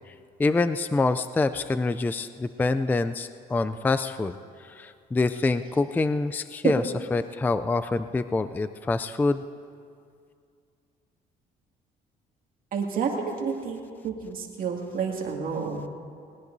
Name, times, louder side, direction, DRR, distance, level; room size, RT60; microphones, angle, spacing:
voice 1, 0.4-4.4 4.7-6.8 7.1-9.4, left 3 dB, 10° left, 11 dB, 0.3 m, -26 dB
voice 2, 12.7-15.9, right 6 dB, 55° right, 0 dB, 2.2 m, -29 dB
20.5 x 19.5 x 2.7 m, 2.3 s
cardioid pair, 110°, 17 cm